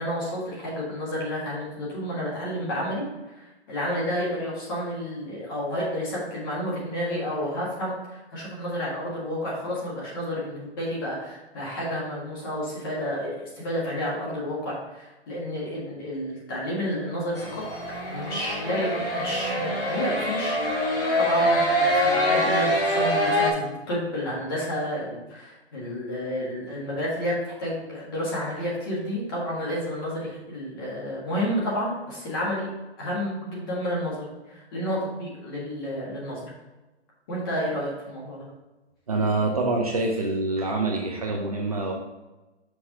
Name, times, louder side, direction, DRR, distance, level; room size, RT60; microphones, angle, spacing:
voice 1, 0.0-17.6 18.1-20.9 21.1-32.7 33.0-36.5 37.3-38.5, equal, 20° left, -5 dB, 1.5 m, -30 dB
sound 1, 17.3-23.5, equal, 55° left, 2.1 m, -24 dB
voice 2, 39.1-41.9, right 2 dB, 35° right, 0 dB, 0.7 m, -25 dB
6.1 x 4.6 x 4.7 m, 1.1 s
hypercardioid pair, 175°, 34 cm